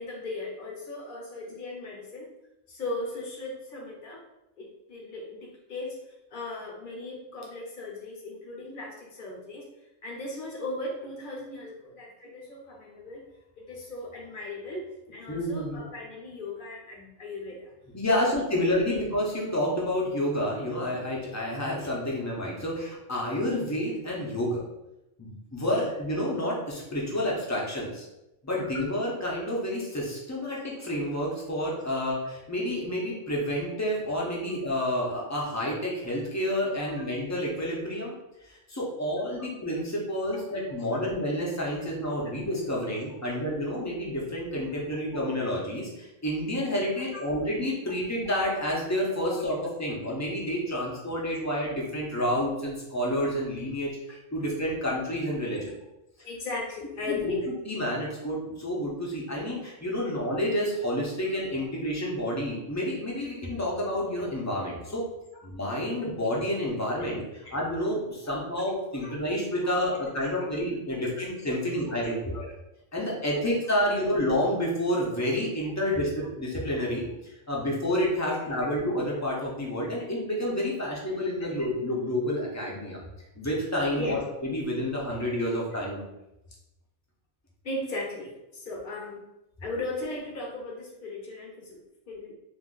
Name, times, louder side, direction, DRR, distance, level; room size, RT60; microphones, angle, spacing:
voice 1, 0.0-2.3 2.7-4.3 4.6-9.7 10.0-13.2 13.6-17.7 18.2-19.1 35.2-35.3 36.8-36.9 40.9-41.0 43.3-43.4 46.6-46.7 47.1-47.2 49.3-49.4 55.5-55.6 56.2-57.5 61.0-61.1 67.4-67.5 68.2-68.3 69.0-69.8 70.2-70.6 70.9-71.1 71.6-72.6 73.3-73.5 78.2-78.5 81.4-81.6 84.0-84.2 87.6-89.2 89.6-92.3, left 2 dB, 50° left, -2 dB, 0.8 m, -38 dB
voice 2, 15.3-15.8 17.9-24.6 25.2-28.0 28.4-38.1 38.7-55.7 57.1-57.3 57.7-65.0 65.4-67.2 67.5-72.1 72.9-77.0 77.5-83.0 83.4-86.0, left 1 dB, 20° left, -4 dB, 0.5 m, -29 dB
2.6 x 2.5 x 3.8 m, 0.92 s
omnidirectional pair, 1.3 m